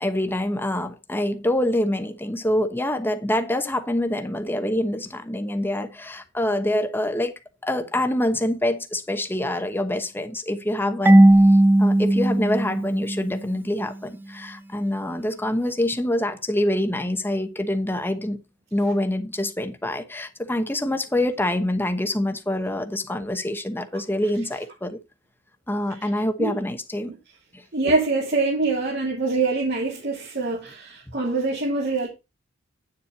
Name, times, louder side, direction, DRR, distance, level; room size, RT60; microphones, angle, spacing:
voice 1, 0.0-7.3 7.6-11.3 11.8-18.4 18.7-25.0 25.7-27.1 27.5-27.6, left 1 dB, 10° left, 1.0 m, -25 dB
Marimba xylophone / Wood, 11.1-13.8, right 1 dB, 10° right, 0.4 m, -17 dB
voice 2, 27.7-32.1, right 3 dB, 55° right, 3.1 m, -24 dB
9.2 x 7.3 x 4.2 m
head